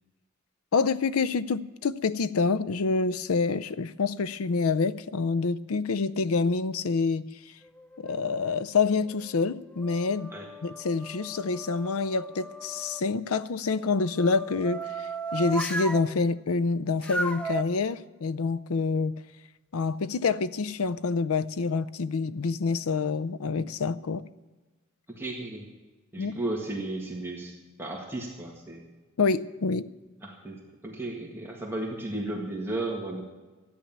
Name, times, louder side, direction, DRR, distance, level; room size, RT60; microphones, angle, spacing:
voice 1, 0.7-7.3 8.0-10.3 10.6-19.2 19.7-24.2 26.2-26.3 29.2-29.9, left 4 dB, 80° left, 0.5 m, -27 dB
sound 1, 7.6-8.5 9.1-13.0 13.8-16.1 17.0-17.6, right 2 dB, 5° left, 0.5 m, -36 dB
voice 2, 25.2-25.7 26.1-27.5 27.8-28.8 30.2-33.2, right 2 dB, 10° right, 1.8 m, -34 dB
13.5 x 9.9 x 7.3 m
head